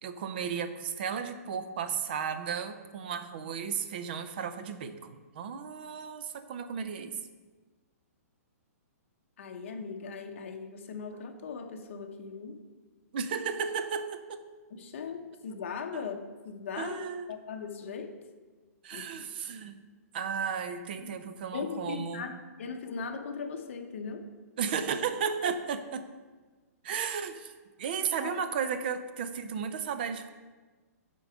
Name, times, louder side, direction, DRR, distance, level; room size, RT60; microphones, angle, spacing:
voice 1, 0.0-7.1 13.1-14.5 15.9-16.0 16.8-17.3 18.8-19.8 20.1-22.3 24.6-26.1 26.8-27.5 27.8-30.3, right 6 dB, 35° right, 9 dB, 0.5 m, -34 dB
voice 2, 9.4-12.6 14.7-16.2 16.4-17.0 17.3-18.1 18.9-19.3 21.0-21.1 21.5-24.3 28.2-28.4, left 5 dB, 50° left, 5 dB, 0.8 m, -39 dB
8.9 x 3.8 x 4.9 m, 1.3 s
hypercardioid pair, 170°, 9 cm